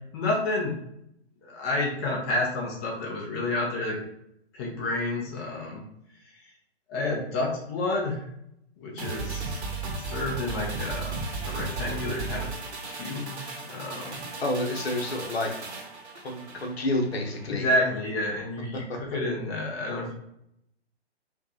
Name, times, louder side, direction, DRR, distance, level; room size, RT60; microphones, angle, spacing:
voice 1, 0.1-0.7 1.4-4.0 4.5-5.8 6.3-6.4 6.9-8.2 8.8-9.6 10.0-12.5 12.9-13.4 13.7-14.2 17.5-20.1, left 2 dB, 25° left, -2 dB, 0.7 m, -30 dB
sound 1, 9.0-17.6 17.9-18.0, right 3 dB, 80° right, 1.1 m, -36 dB
voice 2, 14.4-15.5 16.2-17.6 18.9-19.0, left 2 dB, 65° left, 2 dB, 1.1 m, -29 dB
4.4 x 2.4 x 2.8 m, 0.76 s
figure-of-eight pair, 130°, 33 cm